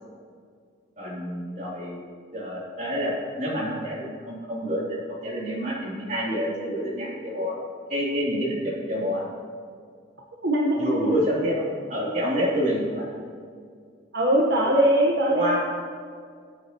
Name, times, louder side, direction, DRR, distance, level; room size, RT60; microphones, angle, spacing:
voice 1, 1.0-2.0 2.3-7.5 7.9-9.3 10.8-11.6 11.9-13.1 15.3-15.6, equal, 40° right, -5 dB, 3.3 m, -28 dB
voice 2, 10.4-11.2 14.1-15.6, right 1 dB, 65° right, -3 dB, 1.3 m, -21 dB
23.0 x 8.5 x 3.1 m, 2.1 s
head